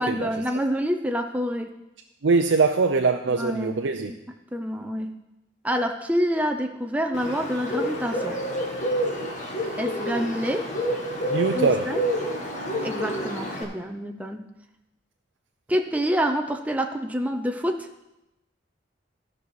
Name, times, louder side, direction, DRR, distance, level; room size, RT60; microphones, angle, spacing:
voice 1, 0.0-1.7 3.4-3.8 4.1-4.2 4.5-5.1 5.6-8.4 9.8-10.7 11.5-12.1 12.8-14.4 15.7-17.9, equal, 10° right, 4 dB, 0.6 m, -27 dB
voice 2, 2.2-4.1 11.3-12.0, right 4 dB, 80° right, 5 dB, 0.5 m, -22 dB
Bird, 7.1-13.6, equal, 40° left, 1.8 m, -28 dB
13.0 x 5.4 x 6.2 m, 0.92 s
head